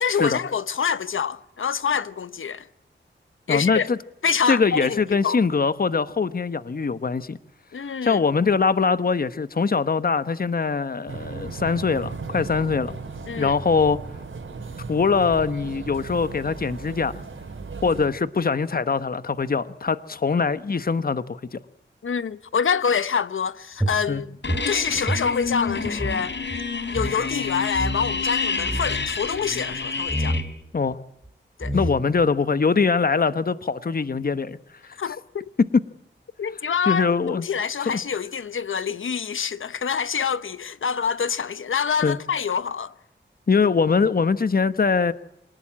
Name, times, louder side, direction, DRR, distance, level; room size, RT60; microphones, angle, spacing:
voice 1, 0.0-2.7 3.5-3.9 4.2-5.4 7.7-8.2 13.3-13.5 22.0-24.4 24.7-26.3 26.9-30.4 31.6-31.8 35.0-35.5 36.4-42.9, left 6 dB, 85° left, 1.0 m, -26 dB
voice 2, 3.5-4.0 4.5-7.4 8.0-12.9 13.4-14.0 14.9-17.2 17.8-21.6 24.1-24.2 30.7-31.0 31.7-34.6 34.8-35.0 36.9-37.4 37.8-38.0 42.0-42.2 43.5-45.1, left 5 dB, 50° left, 1.1 m, -22 dB
sound 1, 11.1-18.1, right 4 dB, 80° right, 4.5 m, -36 dB
sound 2, 23.8-26.2 26.5-26.6 26.9-27.2 27.7-28.2 28.6-29.1 30.1-30.5 31.2-31.3 31.6-32.2, right 1 dB, 10° right, 4.1 m, -28 dB
sound 3, 24.4-30.4, left 4 dB, 65° left, 3.4 m, -28 dB
25.5 x 19.0 x 8.7 m
wide cardioid pair, 65°, 20 cm